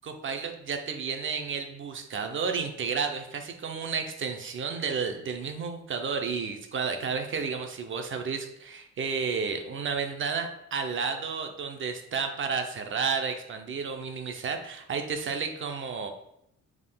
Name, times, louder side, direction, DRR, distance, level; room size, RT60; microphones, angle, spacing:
voice 1, 0.0-16.1, right 5 dB, 40° right, 5 dB, 0.6 m, -32 dB
5.3 x 3.6 x 2.2 m, 0.76 s
cardioid pair, 90°, 30 cm